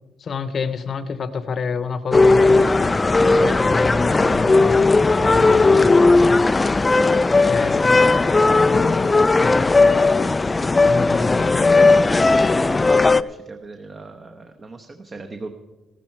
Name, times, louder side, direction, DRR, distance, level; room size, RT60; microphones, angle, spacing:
voice 1, 0.2-6.4 7.4-8.0 8.7-9.0 9.4-10.2 10.8-11.5, left 4 dB, 50° left, 13 dB, 0.8 m, -29 dB
sound 1, 2.1-13.2, left 3 dB, 25° left, 0.3 m, -16 dB
voice 2, 11.0-11.6 11.9-15.5, right 3 dB, 35° right, 5 dB, 0.9 m, -40 dB
14.0 x 13.0 x 4.5 m, 1.1 s
cardioid pair, 90°, 0 cm